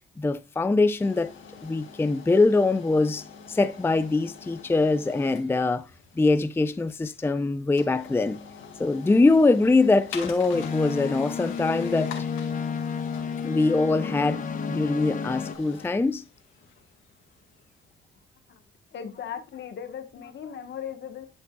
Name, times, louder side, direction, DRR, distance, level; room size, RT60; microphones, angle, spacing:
voice 1, 0.2-1.3 1.6-5.9 6.2-8.4 8.8-12.1 13.4-16.2, left 3 dB, 10° left, 0.4 m, -23 dB
sound 1, 1.0-17.8, left 6 dB, 90° left, 2.0 m, -45 dB
sound 2, 10.5-15.6, left 6 dB, 40° left, 1.0 m, -31 dB
voice 2, 18.9-21.3, left 8 dB, 65° left, 1.3 m, -37 dB
11.5 x 5.3 x 2.3 m
cardioid pair, 90°, 20 cm